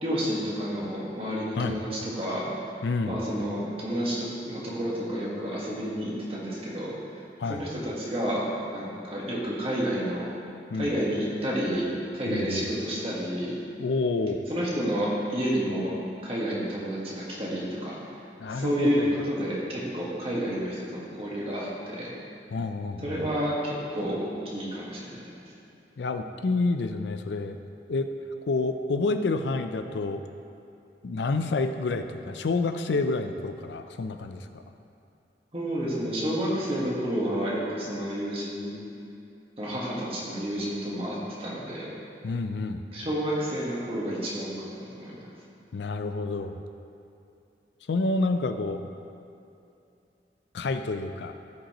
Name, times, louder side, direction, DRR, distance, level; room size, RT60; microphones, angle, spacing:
voice 1, 0.0-2.5 3.1-6.9 7.5-8.5 8.7-10.3 10.7-13.6 14.5-15.9 16.2-18.0 18.5-22.1 23.0-25.3 35.5-38.7 39.6-41.9 42.9-44.5 45.0-45.2, equal, 35° right, -6 dB, 1.6 m, -30 dB
voice 2, 2.8-3.2 7.4-7.7 10.7-10.9 12.3-12.7 13.8-14.4 18.4-19.2 22.5-23.2 26.0-27.6 27.9-28.1 28.5-30.2 31.0-34.5 42.2-42.8 45.7-46.6 47.9-48.8 50.5-51.3, left 3 dB, 80° left, 8 dB, 0.4 m, -28 dB
14.0 x 5.2 x 3.0 m, 2.6 s
head